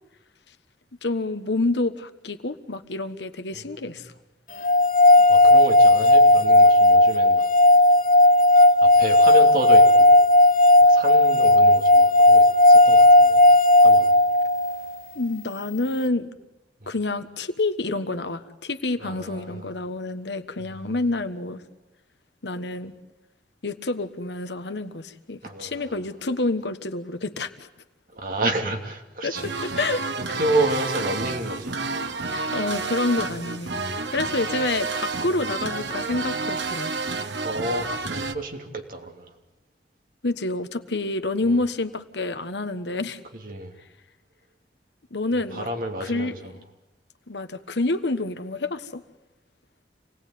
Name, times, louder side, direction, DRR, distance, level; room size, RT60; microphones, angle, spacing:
voice 1, 1.0-4.1 15.1-16.3 16.9-21.6 22.4-22.9 23.6-27.7 29.2-30.0 30.3-30.4 32.3-33.7 34.1-36.9 40.2-43.2 45.1-45.7 46.0-46.5 47.3-49.0, left 2 dB, 80° left, 10 dB, 1.4 m, -28 dB
sound 1, 4.6-14.8, left 1 dB, 50° left, 1.1 m, -14 dB
voice 2, 5.2-7.5 7.7-7.9 8.8-10.2 10.8-13.4 13.8-14.2 16.8-16.9 19.0-19.7 20.6-21.0 25.4-26.0 28.1-29.5 30.3-31.8 37.4-39.3 43.4-43.7 45.5-46.5, right 1 dB, 50° right, 3 dB, 3.1 m, -30 dB
sound 2, 29.3-38.3, right 3 dB, 85° right, 1.3 m, -30 dB
27.5 x 19.0 x 9.4 m, 1.0 s
head